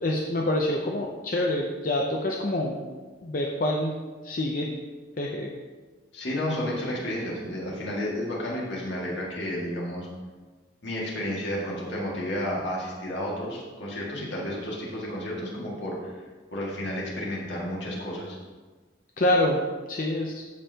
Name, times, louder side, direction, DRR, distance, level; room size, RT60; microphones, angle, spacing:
voice 1, 0.0-2.8 3.2-3.9 4.2-4.7 5.2-5.5 19.2-19.6 19.9-20.3, left 1 dB, 45° left, 0 dB, 0.6 m, -26 dB
voice 2, 6.1-10.1 10.8-16.1 16.5-18.4, left 1 dB, 70° left, -4 dB, 2.0 m, -31 dB
14.0 x 5.5 x 2.9 m, 1.4 s
head